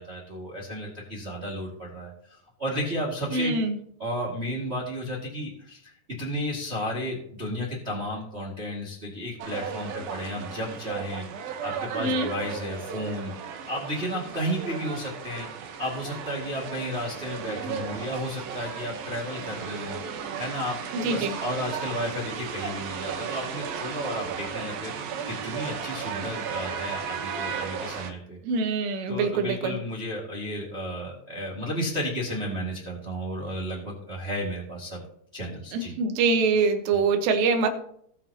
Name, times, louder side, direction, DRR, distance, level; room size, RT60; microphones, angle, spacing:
voice 1, 0.0-3.6 4.0-28.4 29.1-35.0 35.3-35.9 36.9-37.0, equal, 25° right, -3 dB, 1.4 m, -33 dB
voice 2, 3.3-3.8 12.0-12.3 20.9-21.3 28.4-29.8 35.7-37.7, right 4 dB, 85° right, 6 dB, 3.4 m, -24 dB
sound 1, 9.4-28.1, right 7 dB, 70° right, 2.6 m, -35 dB
20.0 x 6.6 x 2.9 m, 0.67 s
omnidirectional pair, 4.9 m